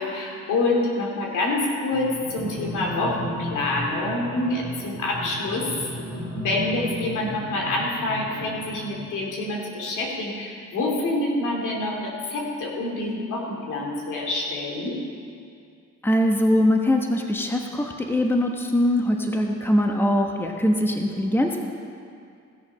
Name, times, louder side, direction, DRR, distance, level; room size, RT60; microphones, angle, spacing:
voice 1, 0.0-5.7 6.4-15.0, left 2 dB, 80° left, -1 dB, 2.5 m, -27 dB
sound 1, 1.9-9.1, equal, 50° left, 2.5 m, -34 dB
voice 2, 16.0-21.6, left 1 dB, 5° left, 2 dB, 1.1 m, -22 dB
16.0 x 6.9 x 5.5 m, 2.4 s
cardioid pair, 90°, 30 cm